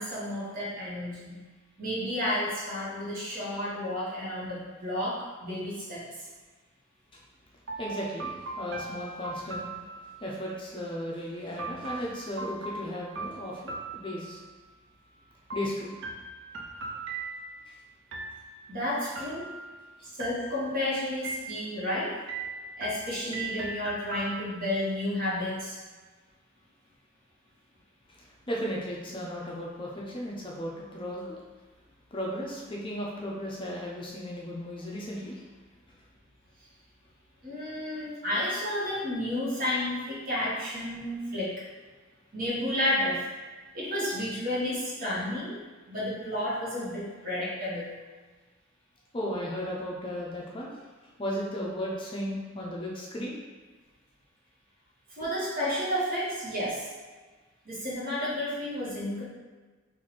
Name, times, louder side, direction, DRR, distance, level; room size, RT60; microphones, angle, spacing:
voice 1, 0.0-1.4 1.8-6.1 18.7-19.5 20.1-22.1 22.8-25.8 37.4-41.6 42.3-43.3 43.7-45.5 45.9-47.9 55.1-56.9 57.6-59.2, left 1 dB, 45° right, -7 dB, 1.2 m, -31 dB
sound 1, 7.7-10.4 11.6-14.6 15.5-17.7 18.1-18.7 19.2-19.8 20.2-20.8 21.2-21.9 22.3-24.8, right 3 dB, 65° right, 0.5 m, -39 dB
voice 2, 7.8-9.7 10.2-14.4 15.5-15.9 17.7-17.8 28.2-31.4 32.1-35.4 37.8-38.1 49.1-50.8 51.2-53.4, equal, 25° left, -4 dB, 0.5 m, -35 dB
3.0 x 2.5 x 4.1 m, 1.3 s
head